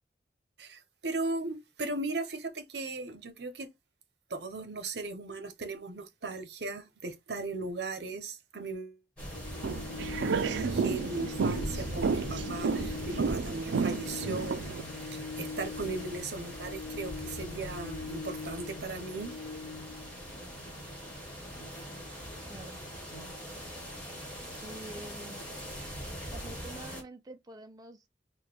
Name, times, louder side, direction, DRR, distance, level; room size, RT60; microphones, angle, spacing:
voice 1, 0.6-3.7 4.3-9.0 10.6-19.3, right 3 dB, 70° right, 0.8 m, -37 dB
sound 1, 9.2-27.0, equal, 5° left, 1.5 m, -42 dB
Organ, 9.3-20.2, left 4 dB, 55° left, 0.4 m, -42 dB
sound 2, 9.6-14.8, right 5 dB, 85° right, 0.4 m, -32 dB
voice 2, 24.6-25.4 26.3-28.1, right 1 dB, 20° right, 0.4 m, -47 dB
4.8 x 2.2 x 3.3 m
head